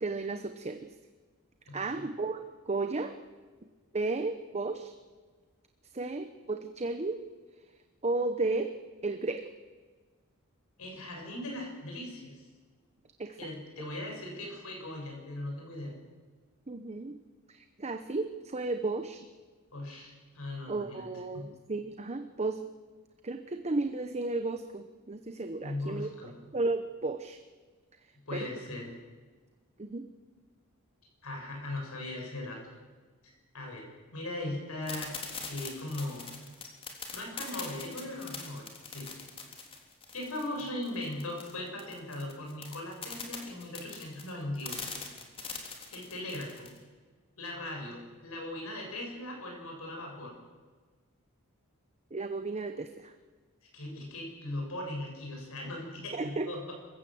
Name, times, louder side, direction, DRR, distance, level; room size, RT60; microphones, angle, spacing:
voice 1, 0.0-0.9 1.7-3.2 3.9-4.9 5.9-7.2 8.0-8.8 9.0-9.5 13.2-13.4 16.7-17.2 17.5-19.3 20.7-22.6 23.2-26.1 26.5-27.4 28.3-28.6 29.8-30.1 52.1-53.1 56.1-56.5, right 3 dB, 30° right, 8 dB, 0.9 m, -33 dB
voice 2, 1.7-2.0 10.8-12.5 13.4-15.9 19.7-21.1 21.3-21.5 25.6-26.3 28.3-28.9 31.2-32.7 33.5-33.9 34.1-35.2 35.4-36.3 37.1-38.7 38.9-39.2 40.1-44.8 45.9-46.7 47.4-50.3 53.7-56.7, left 1 dB, 70° left, 1 dB, 7.5 m, -39 dB
sound 1, 34.9-46.8, left 5 dB, 25° left, 3.3 m, -42 dB
26.5 x 15.5 x 7.8 m, 1.4 s
head